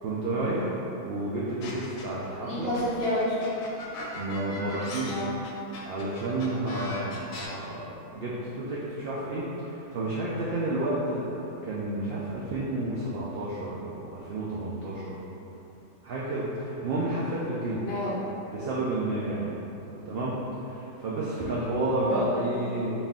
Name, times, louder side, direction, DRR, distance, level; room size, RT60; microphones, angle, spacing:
voice 1, 0.0-2.7 4.0-5.1 5.8-15.2 16.0-17.8 18.5-20.3 20.6-22.9, right 2 dB, 90° right, -6 dB, 0.5 m, -31 dB
sound 1, 1.6-2.3 2.7-7.5, left 2 dB, 85° left, 1.1 m, -39 dB
voice 2, 2.4-3.4 5.1-5.3 17.8-18.2 22.1-22.5, left 1 dB, 65° left, -8 dB, 0.6 m, -30 dB
4.0 x 2.5 x 3.5 m, 2.9 s
omnidirectional pair, 1.6 m